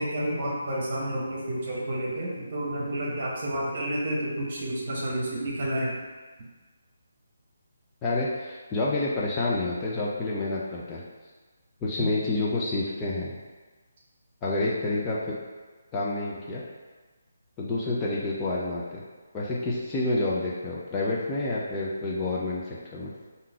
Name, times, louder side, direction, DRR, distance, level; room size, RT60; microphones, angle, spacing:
voice 1, 0.0-5.9, right 1 dB, 40° right, -4 dB, 1.2 m, -30 dB
voice 2, 8.0-11.0 11.8-13.4 14.4-15.4 15.9-16.6 17.6-19.0 19.3-23.1, left 2 dB, 15° left, -6 dB, 0.6 m, -28 dB
3.7 x 2.8 x 4.7 m, 1.3 s
figure-of-eight pair, 145°, 0 cm